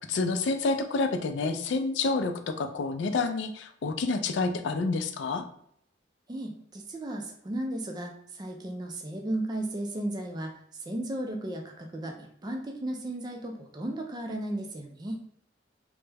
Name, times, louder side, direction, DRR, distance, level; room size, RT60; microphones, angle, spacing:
voice 1, 0.1-5.4, left 3 dB, 70° left, 8 dB, 0.4 m, -28 dB
voice 2, 6.3-15.2, right 1 dB, 20° right, 2 dB, 0.4 m, -35 dB
3.3 x 2.0 x 3.3 m, 0.65 s
head